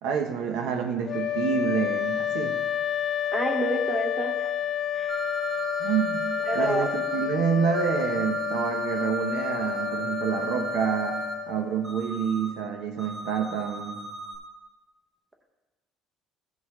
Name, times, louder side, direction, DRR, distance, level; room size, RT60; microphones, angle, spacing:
voice 1, 0.0-2.5 5.8-6.2 6.5-11.2 11.5-14.0, right 7 dB, 65° right, 5 dB, 1.0 m, -28 dB
sound 1, 1.0-12.0, left 10 dB, 20° left, 0.8 m, -30 dB
voice 2, 3.3-4.5 4.9-5.2 6.5-6.9, right 1 dB, 10° right, 2 dB, 0.7 m, -28 dB
sound 2, 5.1-7.2 7.7-11.3 11.8-12.5 13.0-14.4, right 3 dB, 30° right, 1.7 m, -35 dB
15.0 x 5.4 x 3.1 m, 1.2 s
cardioid pair, 180°, 0 cm